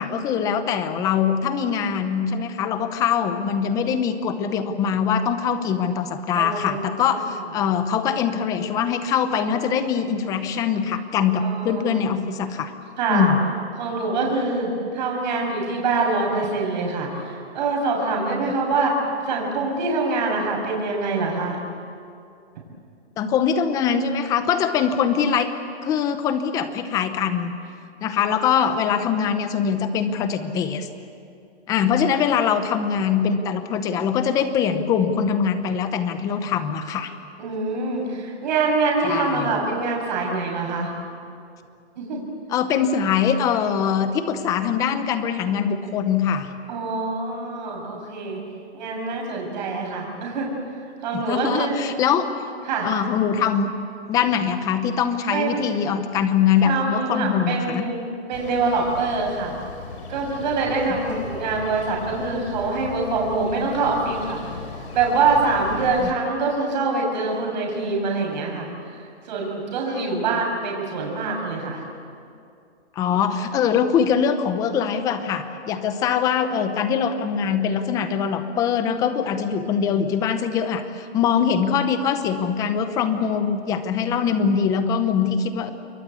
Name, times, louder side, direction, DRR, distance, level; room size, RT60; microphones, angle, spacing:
voice 1, 0.0-12.7 13.1-13.4 23.2-25.5 25.8-27.5 28.0-30.9 31.7-37.1 39.0-39.5 42.5-46.5 51.1-52.2 52.8-53.7 54.1-57.9 61.1-61.2 66.0-66.1 69.9-70.1 73.0-85.7, left 7 dB, 10° left, 10 dB, 0.7 m, -23 dB
voice 2, 6.4-7.2 11.4-11.9 13.0-13.3 13.8-21.6 37.4-40.9 42.0-42.2 46.7-48.4 48.7-50.5 51.0-51.8 52.7-52.9 55.3-55.6 56.6-59.5 60.1-64.7 64.9-71.8 73.1-73.2, right 3 dB, 40° right, -1 dB, 7.4 m, -25 dB
sound 1, 58.3-66.1, left 4 dB, 70° left, 4.4 m, -38 dB
28.5 x 22.0 x 8.5 m, 2.5 s
hypercardioid pair, 165°, 33 cm